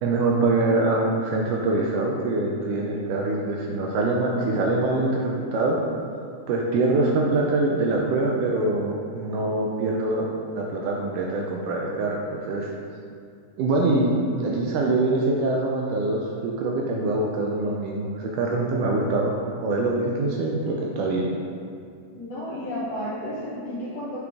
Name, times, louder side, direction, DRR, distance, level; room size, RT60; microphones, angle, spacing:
voice 1, 0.0-5.8 6.5-10.3 10.6-12.7 13.6-19.4 19.6-21.3, right 2 dB, 80° right, -1 dB, 1.9 m, -24 dB
voice 2, 22.1-24.2, equal, 75° left, -8 dB, 1.5 m, -32 dB
6.9 x 4.7 x 3.5 m, 2.4 s
omnidirectional pair, 4.1 m